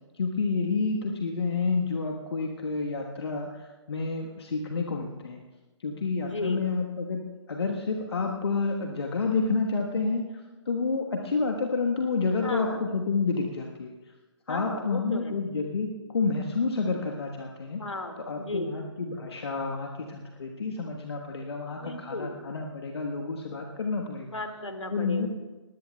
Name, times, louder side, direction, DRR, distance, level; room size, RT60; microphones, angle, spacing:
voice 1, 0.2-5.4 5.8-7.2 7.5-10.2 10.7-13.9 14.5-17.8 18.3-24.3 24.9-25.3, left 4 dB, 55° left, 1 dB, 1.2 m, -29 dB
voice 2, 6.2-6.7 12.4-12.8 14.5-15.4 17.8-18.8 21.8-22.4 24.3-25.3, left 2 dB, 75° left, 6 dB, 1.9 m, -35 dB
19.5 x 19.0 x 2.2 m, 1.2 s
figure-of-eight pair, 135°, 16 cm